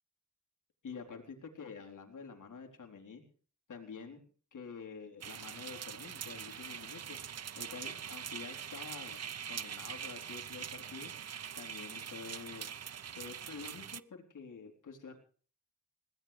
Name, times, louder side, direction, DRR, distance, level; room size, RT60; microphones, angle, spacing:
voice 1, 0.8-3.2 3.7-4.2 4.5-7.2 7.6-9.2 9.5-11.1 11.6-12.7 13.1-15.2, left 5 dB, 75° left, 4 dB, 3.9 m, -48 dB
sound 1, 5.2-14.0, right 8 dB, 55° right, 0.7 m, -43 dB
21.5 x 17.5 x 3.4 m, 0.42 s
cardioid pair, 50°, 31 cm